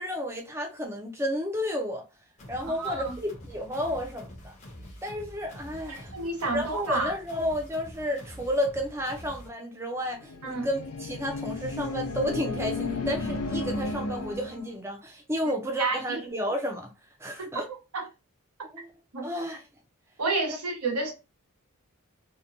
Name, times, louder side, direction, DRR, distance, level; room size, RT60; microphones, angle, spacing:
voice 1, 0.0-2.0 2.5-4.5 5.0-6.1 6.5-16.9 17.2-17.7 18.7-18.9 19.2-19.6 20.5-20.6, equal, 10° right, 0.4 m, -31 dB
sound 1, 2.4-9.5, equal, 30° left, 0.6 m, -46 dB
voice 2, 2.6-3.1 6.1-7.1 10.4-10.7 15.8-16.2 17.9-18.0 19.1-19.3 20.2-21.1, right 3 dB, 80° right, 1.0 m, -29 dB
sound 2, 10.1-14.7, left 3 dB, 85° left, 0.5 m, -33 dB
2.8 x 2.2 x 2.5 m
head